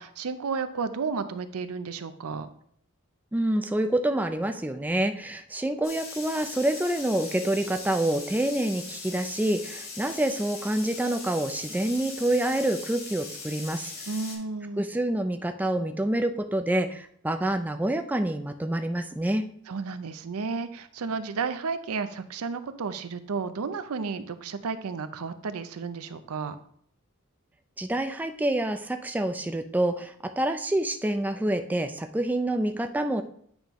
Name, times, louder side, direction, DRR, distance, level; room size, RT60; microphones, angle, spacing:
voice 1, 0.0-2.5 14.1-14.9 19.7-26.6, right 5 dB, 70° right, 11 dB, 0.5 m, -32 dB
voice 2, 3.3-13.9 14.8-19.5 27.8-33.2, right 1 dB, 5° right, 7 dB, 0.3 m, -27 dB
sound 1, 5.8-14.3, left 4 dB, 65° left, 2.7 m, -40 dB
8.9 x 5.2 x 3.0 m, 0.64 s
head